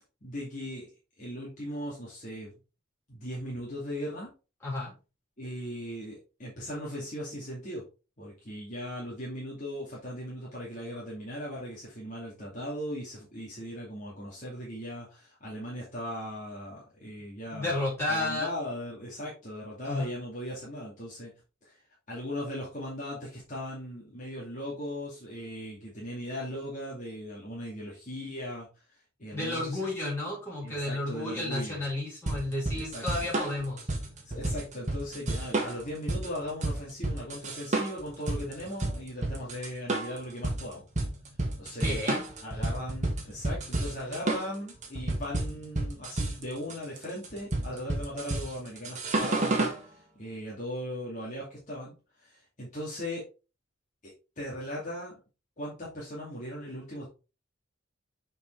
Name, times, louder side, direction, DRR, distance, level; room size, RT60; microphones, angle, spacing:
voice 1, 0.2-0.9 1.2-2.6 3.1-4.3 5.4-7.8 8.2-17.7 18.1-21.3 21.6-21.7 22.1-28.7 29.2-29.9 30.6-31.8 32.7-33.0 34.2-40.8 41.6-42.0 42.4-51.9 52.2-53.2 54.0-55.1 55.6-57.1, equal, 40° left, -6 dB, 2.4 m, -38 dB
voice 2, 4.6-4.9 17.5-18.5 19.8-20.1 29.3-33.8 41.8-42.2, left 2 dB, 10° left, -6 dB, 4.4 m, -32 dB
sound 1, 32.3-49.8, right 2 dB, 35° right, 1.6 m, -31 dB
6.8 x 5.3 x 3.3 m, 0.31 s
head